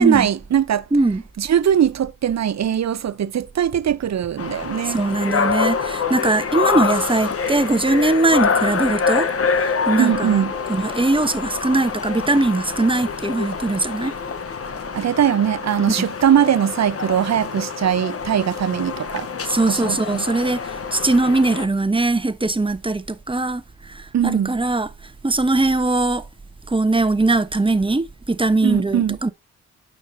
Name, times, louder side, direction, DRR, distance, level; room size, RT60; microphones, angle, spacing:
voice 1, 0.0-0.8 1.4-5.0 10.0-10.5 14.9-19.3 19.7-20.2 24.1-24.5 28.6-29.2, right 9 dB, 50° right, 0.9 m, -20 dB
voice 2, 0.9-1.2 4.8-14.1 19.4-24.9 25.2-26.2 26.7-29.3, right 2 dB, 15° right, 1.2 m, -21 dB
sound 1, 4.4-21.7, left 5 dB, 45° left, 1.1 m, -26 dB
9.0 x 6.3 x 2.8 m
hypercardioid pair, 40°, 33 cm